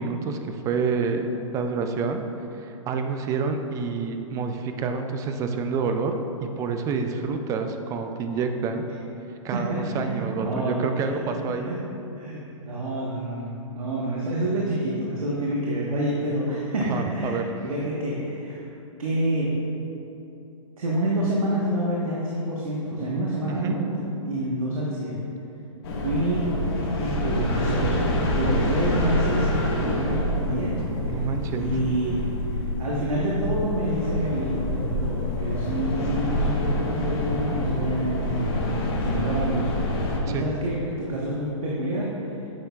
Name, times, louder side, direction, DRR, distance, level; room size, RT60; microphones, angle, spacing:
voice 1, 0.0-2.2 2.6-8.9 9.4-11.7 16.9-17.4 23.5-23.8 31.1-31.7 40.3-40.4, right 5 dB, 20° right, 6 dB, 0.4 m, -28 dB
voice 2, 9.5-11.8 12.1-18.6 19.0-19.5 20.8-25.2 26.0-26.5 27.0-28.0 28.3-30.7 31.1-31.2 31.5-32.2 32.5-38.7 39.0-42.1, right 1 dB, 85° right, -5 dB, 1.3 m, -28 dB
sound 1, 25.8-40.2, left 1 dB, 45° left, 1.4 m, -27 dB
9.7 x 6.3 x 2.4 m, 2.9 s
hypercardioid pair, 130°, 17 cm